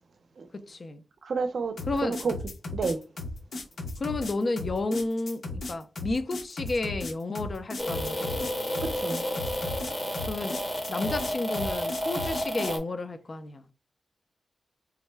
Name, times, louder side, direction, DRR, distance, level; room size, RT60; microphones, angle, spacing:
voice 1, 0.5-1.0 1.9-2.2 4.0-8.5 10.3-10.6 10.9-13.6, left 2 dB, 40° left, 0.4 m, -31 dB
voice 2, 1.2-1.7 2.0-2.4 2.7-3.0 8.8-9.2, right 4 dB, 65° right, 0.5 m, -29 dB
sound 1, 1.8-12.8, left 2 dB, 70° left, 0.8 m, -36 dB
sound 2, 7.8-12.8, equal, 15° left, 1.1 m, -31 dB
3.5 x 2.1 x 3.2 m
wide cardioid pair, 115°, 0 cm